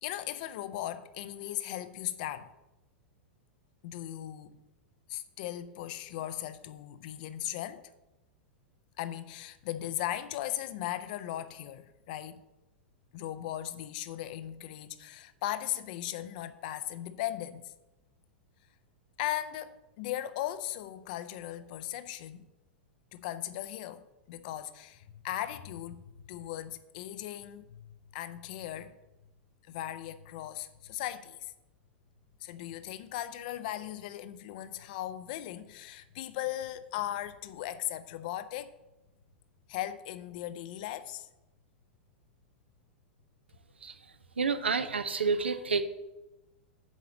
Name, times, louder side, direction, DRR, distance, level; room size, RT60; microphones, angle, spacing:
voice 1, 0.0-2.5 3.8-4.6 5.1-7.9 9.0-12.4 13.1-17.7 19.2-22.5 23.1-29.0 29.7-31.5 32.4-38.7 39.7-41.3, left 13 dB, 50° left, 0.6 m, -38 dB
voice 2, 44.4-45.8, right 5 dB, 75° right, 0.7 m, -29 dB
7.2 x 4.8 x 6.8 m
figure-of-eight pair, 95°, 6 cm